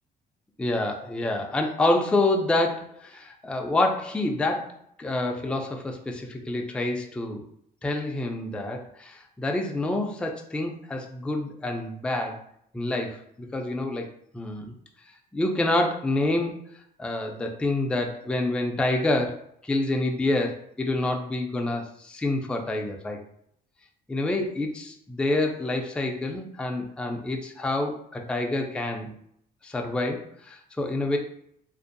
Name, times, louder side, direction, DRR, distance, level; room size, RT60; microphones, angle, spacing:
voice 1, 0.6-7.5 7.8-12.4 12.7-14.1 14.3-14.7 15.3-16.7 17.0-23.2 24.1-29.1 29.6-31.2, left 2 dB, 5° left, 2 dB, 0.3 m, -27 dB
2.5 x 2.2 x 2.5 m, 0.70 s
cardioid pair, 110°, 17 cm